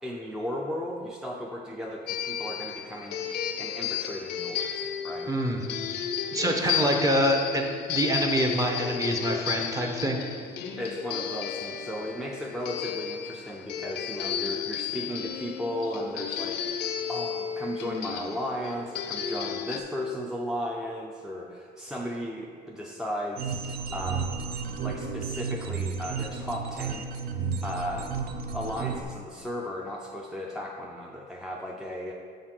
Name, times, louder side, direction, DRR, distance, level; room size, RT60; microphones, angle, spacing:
voice 1, 0.0-5.3 6.6-7.0 10.8-24.4 24.8-27.1 27.6-28.2 28.5-32.1, left 1 dB, 5° right, -2 dB, 0.5 m, -35 dB
sound 1, 2.1-19.8, left 8 dB, 85° left, 0.5 m, -33 dB
voice 2, 5.3-5.6 5.9-6.0 6.3-10.2, right 1 dB, 20° right, 2 dB, 0.8 m, -26 dB
sound 2, 23.4-29.0, right 5 dB, 65° right, 0.5 m, -33 dB
6.4 x 3.9 x 6.0 m, 2.2 s
cardioid pair, 110°, 17 cm